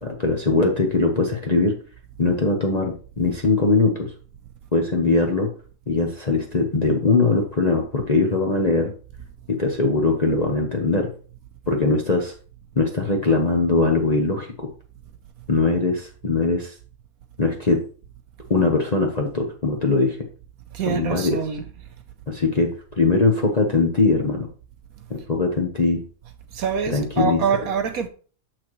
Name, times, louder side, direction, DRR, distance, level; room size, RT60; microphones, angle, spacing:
voice 1, 0.0-1.7 2.2-4.1 4.7-5.5 5.9-8.9 9.5-11.1 11.7-12.3 12.8-14.7 15.5-16.7 17.4-17.8 18.5-20.2 20.9-21.4 22.3-22.7 23.0-24.5 25.1-26.0 26.9-27.4, left 3 dB, 35° left, 0.7 m, -21 dB
voice 2, 20.7-21.7 26.5-28.1, right 6 dB, 65° right, 1.1 m, -25 dB
6.9 x 6.0 x 3.1 m
omnidirectional pair, 1.8 m